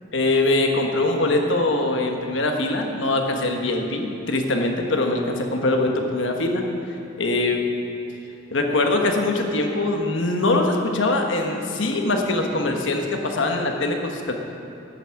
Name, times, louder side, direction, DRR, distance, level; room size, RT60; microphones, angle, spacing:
voice 1, 0.1-6.6 7.2-7.6 8.5-14.3, left 2 dB, 75° left, 3 dB, 1.2 m, -22 dB
10.5 x 9.3 x 6.5 m, 2.9 s
head